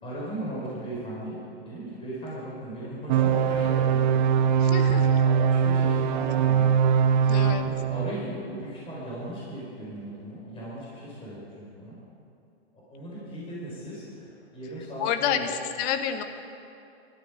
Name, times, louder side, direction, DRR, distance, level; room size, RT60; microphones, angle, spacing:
voice 1, 0.0-4.1 4.8-6.7 7.2-12.0 12.7-15.5, right 1 dB, 15° left, -7 dB, 4.9 m, -37 dB
sound 1, 3.1-8.1, right 7 dB, 45° right, 0.7 m, -22 dB
voice 2, 4.6-5.2 7.3-7.6 15.0-16.2, left 9 dB, 35° left, 9 dB, 1.1 m, -29 dB
19.0 x 13.0 x 5.1 m, 2.6 s
hypercardioid pair, 135°, 34 cm